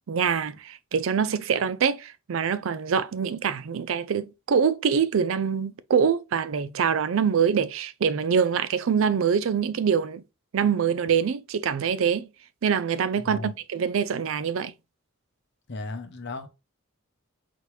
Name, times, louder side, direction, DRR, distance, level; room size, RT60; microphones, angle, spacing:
voice 1, 0.1-10.2 10.5-12.3 12.6-14.7, right 7 dB, 65° right, 0.4 m, -24 dB
voice 2, 15.7-16.5, left 2 dB, 55° left, 0.7 m, -35 dB
4.2 x 3.3 x 3.1 m
head